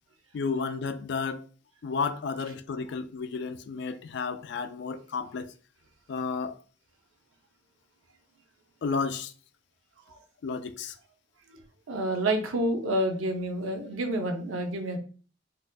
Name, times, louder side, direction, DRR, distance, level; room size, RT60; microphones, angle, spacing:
voice 1, 0.3-1.5 1.8-5.5 6.1-6.6 8.8-9.3 10.4-11.0, left 5 dB, 55° left, 0.3 m, -32 dB
voice 2, 11.9-15.0, right 1 dB, 85° right, 0.6 m, -29 dB
3.9 x 2.6 x 2.2 m
head